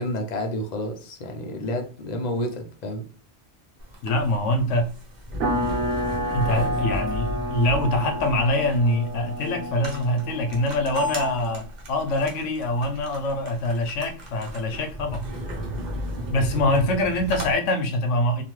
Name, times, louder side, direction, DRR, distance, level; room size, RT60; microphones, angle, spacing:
voice 1, 0.0-3.0, left 1 dB, 55° left, 0.5 m, -30 dB
sound 1, 3.8-17.5, equal, 45° right, 0.7 m, -34 dB
voice 2, 4.0-4.9 6.3-15.3 16.3-18.4, left 1 dB, 80° left, 0.9 m, -24 dB
sound 2, 5.4-11.6, right 1 dB, 75° right, 0.9 m, -30 dB
2.8 x 2.2 x 3.0 m
omnidirectional pair, 1.3 m